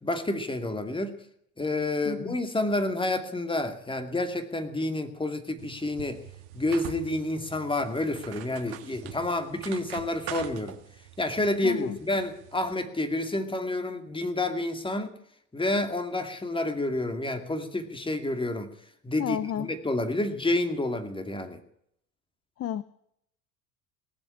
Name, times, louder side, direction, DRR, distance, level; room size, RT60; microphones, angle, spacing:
voice 1, 0.0-1.2 1.6-6.2 6.5-10.8 11.2-15.1 15.5-18.7 19.0-21.6, left 2 dB, 10° left, 8 dB, 2.3 m, -29 dB
voice 2, 2.0-2.4 11.6-12.0 19.2-19.7 22.6-22.8, left 10 dB, 35° left, 17 dB, 0.7 m, -32 dB
sound 1, 5.6-12.7, right 12 dB, 55° right, 1.9 m, -44 dB
18.5 x 7.4 x 9.9 m, 0.72 s
hypercardioid pair, 75°, 44 cm